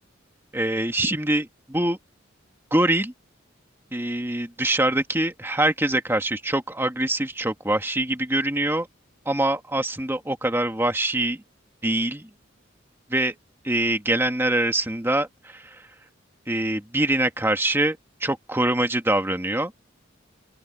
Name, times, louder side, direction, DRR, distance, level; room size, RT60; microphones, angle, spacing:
voice 1, 0.5-2.0 2.7-3.1 3.9-8.9 9.2-11.4 11.8-12.2 13.1-13.3 13.6-15.3 15.5-15.6 16.5-19.7, right 1 dB, 10° right, 1.8 m, -24 dB
open air
head